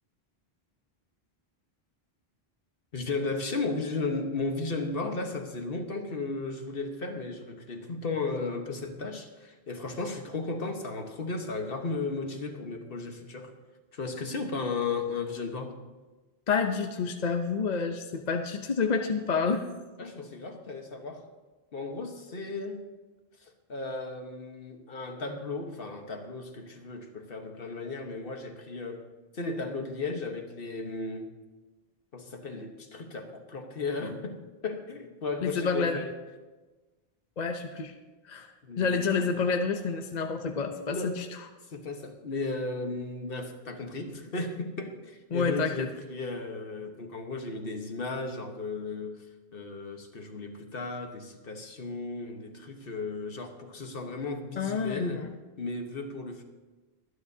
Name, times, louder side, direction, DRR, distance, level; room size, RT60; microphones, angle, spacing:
voice 1, 2.9-13.5 13.9-15.8 20.0-21.3 21.7-22.8 23.4-29.1 29.3-31.3 32.1-36.2 38.6-39.3 40.9-41.2 41.7-49.3 49.5-55.3 55.6-56.4, left 3 dB, 65° left, 5 dB, 1.4 m, -35 dB
voice 2, 16.5-19.7 35.4-36.0 37.4-37.9 38.2-41.3 45.3-45.9 54.6-55.4, left 5 dB, 45° left, 5 dB, 0.8 m, -29 dB
24.0 x 9.7 x 2.7 m, 1.2 s
omnidirectional pair, 1.0 m